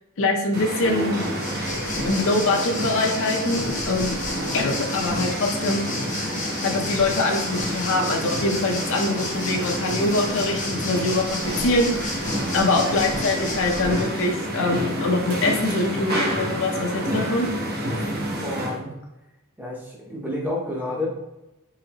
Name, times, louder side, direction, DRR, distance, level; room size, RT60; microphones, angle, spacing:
voice 1, 0.2-1.2 2.1-4.2 4.5-5.9 6.6-17.5, left 2 dB, 60° left, 2 dB, 0.6 m, -24 dB
sound 1, 0.5-18.8, right 1 dB, 45° right, 0.8 m, -29 dB
Waves surf, 1.0-14.3, left 3 dB, 35° left, 0.8 m, -33 dB
voice 2, 18.1-18.9 19.6-21.1, left 1 dB, 10° right, -2 dB, 0.7 m, -30 dB
3.9 x 3.1 x 2.9 m, 0.98 s
head